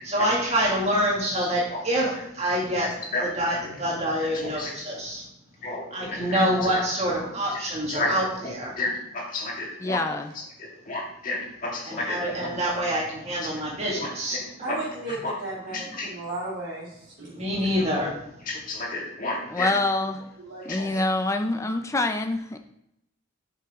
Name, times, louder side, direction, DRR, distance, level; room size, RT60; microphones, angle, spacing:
voice 1, 0.0-2.9 3.2-5.2 5.9-8.7 11.9-14.4 17.3-18.2, equal, 35° right, -2 dB, 2.1 m, -26 dB
voice 2, 4.2-4.9 5.6-6.7 7.9-10.2 10.9-12.5 13.9-14.8 15.1-15.3 15.7-16.1 18.5-19.8 20.6-21.0, left 2 dB, 45° left, -2 dB, 2.1 m, -32 dB
voice 3, 9.8-10.3 19.5-20.2 20.7-22.6, left 2 dB, 15° left, 6 dB, 0.4 m, -26 dB
voice 4, 14.6-17.5 20.4-21.0, right 2 dB, 80° right, -8 dB, 2.2 m, -35 dB
7.9 x 5.9 x 3.6 m, 0.80 s
head